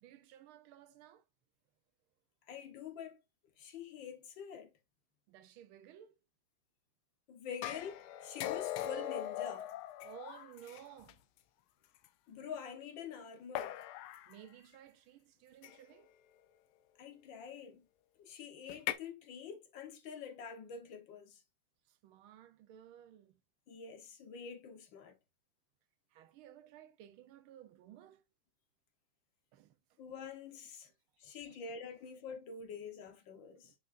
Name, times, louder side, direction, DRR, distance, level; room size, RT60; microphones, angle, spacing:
voice 1, 0.0-1.2 5.3-6.2 10.0-11.2 14.3-16.1 21.9-23.4 26.1-28.2 29.5-30.0 33.6-33.7, right 11 dB, 85° right, 1.6 m, -56 dB
voice 2, 2.5-3.2 3.6-4.7 7.3-9.7 12.3-13.8 17.0-17.9 18.2-21.4 23.7-25.2 30.0-30.9 31.2-33.7, left 6 dB, 65° left, 1.8 m, -46 dB
sound 1, 7.6-11.1 12.0-12.1 13.6-14.3 15.6-16.0 18.7-18.9, left 12 dB, 85° left, 1.5 m, -40 dB
6.4 x 5.9 x 2.5 m
omnidirectional pair, 2.3 m